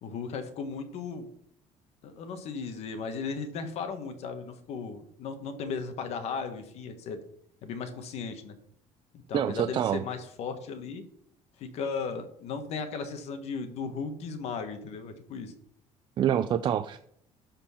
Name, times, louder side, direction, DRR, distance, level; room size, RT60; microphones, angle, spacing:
voice 1, 0.0-1.3 2.0-7.2 7.6-8.5 9.1-11.0 11.6-15.5, left 5 dB, 55° left, 8 dB, 1.3 m, -36 dB
voice 2, 9.3-10.0 16.2-17.0, right 10 dB, 40° right, 10 dB, 0.4 m, -26 dB
12.5 x 4.4 x 5.7 m, 0.69 s
cardioid pair, 160°, 13 cm